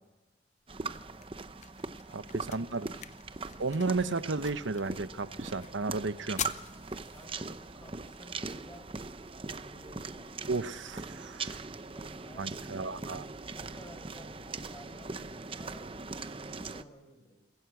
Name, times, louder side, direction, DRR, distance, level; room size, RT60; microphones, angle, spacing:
sound 1, 0.6-12.6, left 9 dB, 35° left, 0.7 m, -48 dB
sound 2, 0.7-16.8, right 3 dB, 30° right, 0.7 m, -41 dB
voice 1, 0.8-1.4 2.0-3.0 7.1-8.9 9.5-10.7 11.9-13.0 13.5-17.4, equal, 15° left, 4 dB, 5.2 m, -54 dB
voice 2, 2.1-2.9 3.6-6.4 10.5-11.6 12.4-13.2, right 3 dB, 85° right, 13 dB, 0.9 m, -33 dB
22.5 x 16.5 x 8.2 m, 1.1 s
head